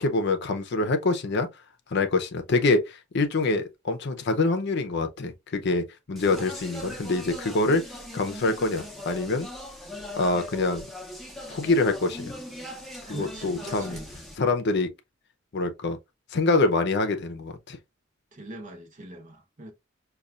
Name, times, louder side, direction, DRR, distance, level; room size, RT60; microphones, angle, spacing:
voice 1, 0.0-1.5 1.9-7.8 8.1-9.5 10.2-10.9 11.5-12.3 13.1-14.0 14.4-14.9 15.5-16.0 16.3-17.8, left 3 dB, 60° left, 0.6 m, -25 dB
Speech, 6.2-14.4, left 1 dB, ahead, 0.6 m, -40 dB
voice 2, 13.1-14.0 18.3-19.7, right 1 dB, 40° right, 0.9 m, -41 dB
5.3 x 2.3 x 2.3 m
head